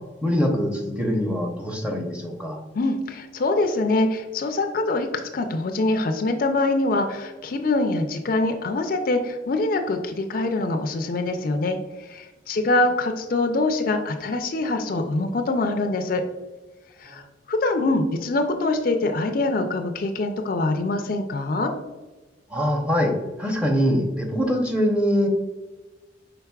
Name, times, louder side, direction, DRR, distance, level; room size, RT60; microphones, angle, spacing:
voice 1, 0.2-2.6 17.1-17.2 22.5-23.1 23.4-25.3, equal, 5° right, 1 dB, 0.7 m, -23 dB
voice 2, 2.7-11.8 12.1-16.2 17.0-17.2 17.5-21.7, left 2 dB, 50° left, 5 dB, 0.4 m, -24 dB
5.7 x 3.9 x 2.3 m, 1.2 s
head